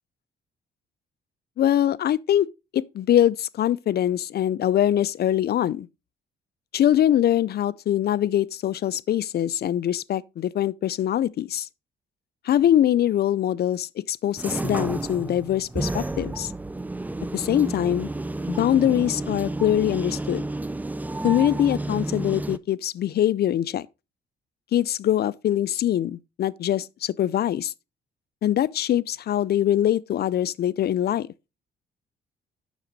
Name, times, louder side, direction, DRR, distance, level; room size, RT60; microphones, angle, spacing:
voice 1, 1.6-2.5 2.7-5.9 6.7-11.7 12.4-16.5 17.3-18.1 18.5-20.5 21.2-23.9 24.7-27.7 28.4-31.3, left 11 dB, 55° left, 0.4 m, -23 dB
sound 1, 14.4-22.6, right 2 dB, 10° right, 0.4 m, -31 dB
7.2 x 6.1 x 4.0 m
cardioid pair, 90°, 20 cm